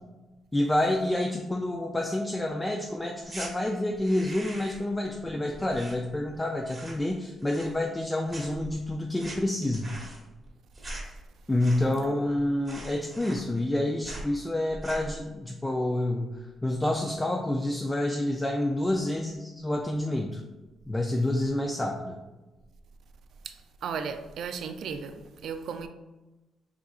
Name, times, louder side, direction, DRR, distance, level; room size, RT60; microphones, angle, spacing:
voice 1, 0.5-9.9 11.5-20.4 20.9-22.2, left 1 dB, 10° left, 1 dB, 0.3 m, -28 dB
sound 1, 3.2-3.5 3.9-4.9 5.2-6.4 6.6-7.1 7.4-8.0 8.3-12.1 12.3-12.4 12.6-13.7 14.0-14.3 14.7-15.2, right 2 dB, 20° right, 1.1 m, -42 dB
voice 2, 23.8-25.9, right 6 dB, 65° right, 8 dB, 0.4 m, -35 dB
4.8 x 3.6 x 2.4 m, 1.1 s
cardioid pair, 145°, 0 cm